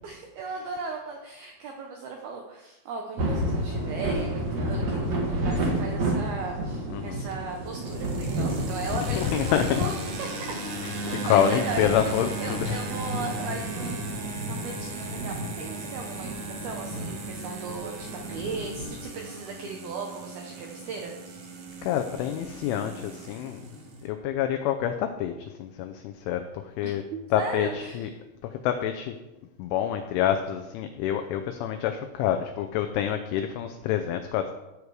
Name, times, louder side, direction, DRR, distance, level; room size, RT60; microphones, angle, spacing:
voice 1, 0.0-9.9 10.2-10.6 11.1-21.5 26.8-26.9 27.4-28.1, right 4 dB, 85° right, 2 dB, 2.1 m, -37 dB
sound 1, 3.2-18.9, right 1 dB, 45° right, 2.3 m, -32 dB
sound 2, 7.3-24.1, right 1 dB, 60° right, 1.8 m, -37 dB
voice 2, 9.1-9.9 10.8-12.8 21.8-23.6 24.0-25.3 25.6-26.4 26.8-27.0 27.3-28.1 28.6-29.1 29.6-34.5, left 10 dB, 80° left, 6 dB, 3.0 m, -27 dB
17.5 x 6.9 x 4.8 m, 1.0 s
omnidirectional pair, 6.0 m